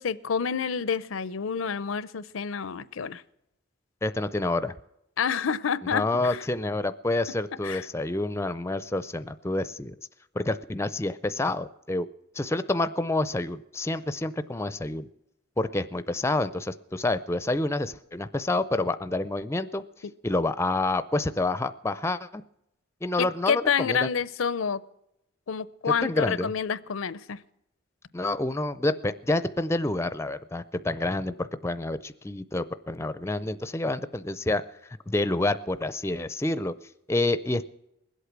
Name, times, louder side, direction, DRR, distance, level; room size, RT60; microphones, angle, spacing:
voice 1, 0.0-3.2 5.2-6.4 7.6-7.8 23.2-24.8 25.5-27.4, left 6 dB, 80° left, 18 dB, 0.6 m, -28 dB
voice 2, 4.0-4.8 5.9-9.9 10.4-12.1 12.4-15.1 15.6-19.8 20.2-22.4 23.0-24.1 25.8-26.5 28.1-34.6 35.1-36.7 37.1-37.7, left 2 dB, 15° left, 14 dB, 0.4 m, -28 dB
21.5 x 8.3 x 6.0 m, 0.84 s
head